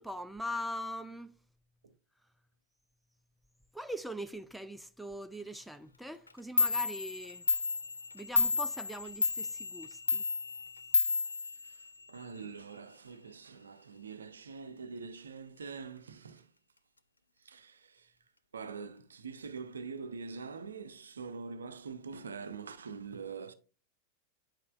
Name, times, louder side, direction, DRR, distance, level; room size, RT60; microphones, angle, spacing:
voice 1, 0.0-1.4 3.7-7.5 8.1-10.2, equal, ahead, 0.4 m, -41 dB
Clock, 6.3-6.4 6.6-12.2, left 4 dB, 80° left, 0.3 m, -31 dB
voice 2, 11.0-16.5 17.4-18.1 18.5-23.5, right 5 dB, 70° right, 0.5 m, -44 dB
8.8 x 5.4 x 2.3 m
figure-of-eight pair, 90°, 0 cm